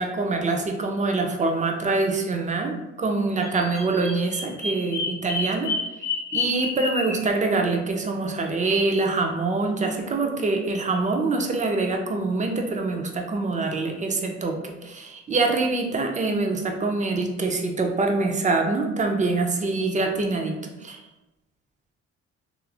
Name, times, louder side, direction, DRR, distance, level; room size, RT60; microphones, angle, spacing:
voice 1, 0.0-5.7 6.3-21.0, right 3 dB, 25° right, 3 dB, 0.4 m, -25 dB
Bird vocalization bird call bird song, 3.4-7.2, left 3 dB, 35° left, 0.8 m, -30 dB
3.0 x 2.4 x 2.3 m, 0.99 s
cardioid pair, 90°, 30 cm